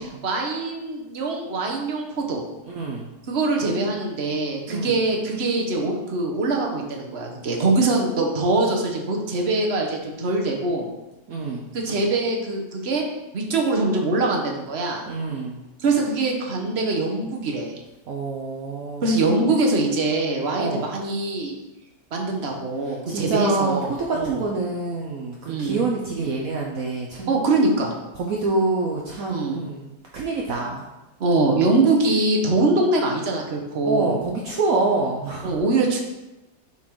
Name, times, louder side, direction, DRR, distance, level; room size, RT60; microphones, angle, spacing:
voice 1, 0.0-2.4 3.3-10.9 11.7-13.0 13.3-15.0 15.8-17.7 19.0-21.5 22.1-24.4 25.4-25.8 27.3-27.9 29.3-29.6 31.2-34.2 35.4-36.0, right 2 dB, 40° right, 0 dB, 1.3 m, -23 dB
voice 2, 2.7-3.1 4.7-5.0 11.3-11.7 15.1-15.6 18.1-19.1 20.5-20.8 22.8-27.3 28.2-29.9 30.1-30.8 33.8-35.6, right 3 dB, 60° right, -2 dB, 1.2 m, -26 dB
7.3 x 4.5 x 4.7 m, 1.0 s
omnidirectional pair, 1.7 m